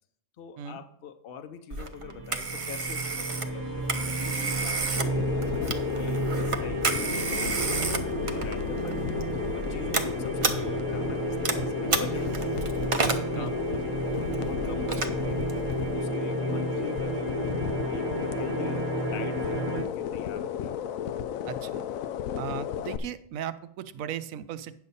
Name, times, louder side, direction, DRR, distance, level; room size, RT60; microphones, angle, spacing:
voice 1, 0.4-5.5 5.9-9.2 9.5-12.5 13.0-14.0 14.4-15.5 15.9-17.5 17.9-20.7, left 7 dB, 55° left, 8 dB, 0.7 m, -43 dB
Telephone, 1.7-15.9, right 4 dB, 35° right, 0.5 m, -32 dB
sound 1, 1.9-19.8, right 4 dB, 50° right, 1.2 m, -33 dB
sound 2, 3.3-23.0, left 9 dB, 90° left, 1.0 m, -33 dB
voice 2, 21.5-21.8 22.3-24.7, right 9 dB, 85° right, 13 dB, 1.0 m, -36 dB
9.4 x 6.7 x 4.1 m, 0.68 s
omnidirectional pair, 1.4 m